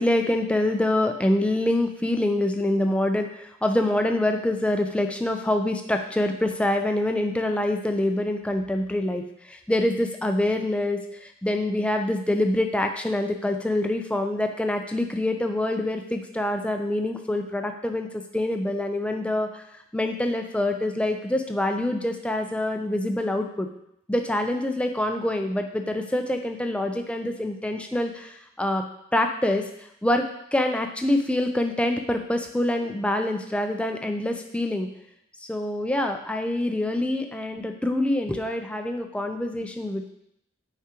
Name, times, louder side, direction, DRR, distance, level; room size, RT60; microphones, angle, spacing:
voice 1, 0.0-18.1 18.3-19.6 19.9-23.7 24.1-28.8 29.1-34.9 35.4-40.1, left 1 dB, 5° left, 4 dB, 0.5 m, -25 dB
8.3 x 4.9 x 2.9 m, 0.76 s
head